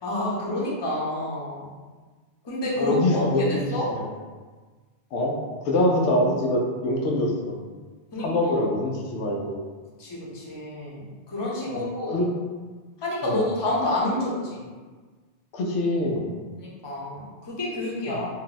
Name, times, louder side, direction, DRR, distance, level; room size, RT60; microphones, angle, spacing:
voice 1, 0.0-1.8 2.4-3.0 3.4-3.9 8.1-8.6 10.0-11.0 11.3-12.2 13.0-14.6 16.6-18.3, left 1 dB, 30° left, -5 dB, 0.6 m, -29 dB
voice 2, 2.8-4.1 5.1-5.4 5.6-7.6 8.2-9.6 11.7-12.3 13.2-13.5 15.5-16.2 18.1-18.2, left 1 dB, 85° left, 0 dB, 0.9 m, -24 dB
2.6 x 2.2 x 3.9 m, 1.4 s
omnidirectional pair, 1.1 m